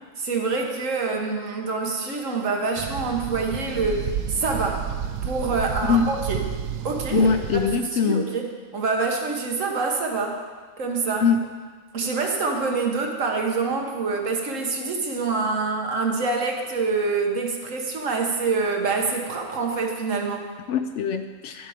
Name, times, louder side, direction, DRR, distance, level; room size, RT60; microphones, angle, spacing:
voice 1, 0.2-4.9 5.3-6.4 6.8-7.3 7.8-8.5 8.7-10.4 10.8-11.3 11.9-20.5, right 4 dB, 65° right, 1 dB, 1.6 m, -26 dB
sound 1, 2.8-7.8, right 8 dB, 90° right, 1.0 m, -31 dB
voice 2, 7.1-8.3 11.2-11.4 20.7-21.7, left 5 dB, 65° left, 8 dB, 0.8 m, -22 dB
11.0 x 7.4 x 5.0 m, 1.5 s
omnidirectional pair, 1.4 m